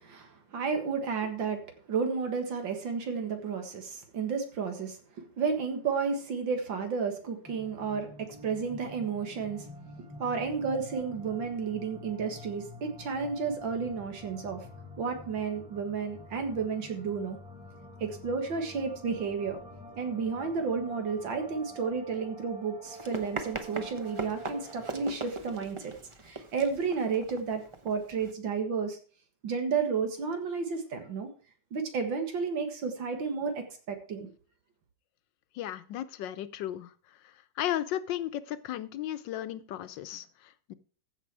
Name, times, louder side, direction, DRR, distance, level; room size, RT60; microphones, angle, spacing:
voice 1, 0.0-9.7 10.2-14.6 15.0-17.4 18.0-19.6 20.0-25.9 26.2-29.0 29.4-31.3 31.7-34.3, right 5 dB, 90° right, 6 dB, 2.4 m, -32 dB
sound 1, 7.4-25.1, equal, 5° right, 1.6 m, -48 dB
Run, 22.8-28.3, right 2 dB, 25° right, 0.6 m, -40 dB
voice 2, 35.5-36.9 37.2-40.7, left 12 dB, 80° left, 13 dB, 1.4 m, -35 dB
15.0 x 5.7 x 4.7 m, 0.40 s
omnidirectional pair, 2.0 m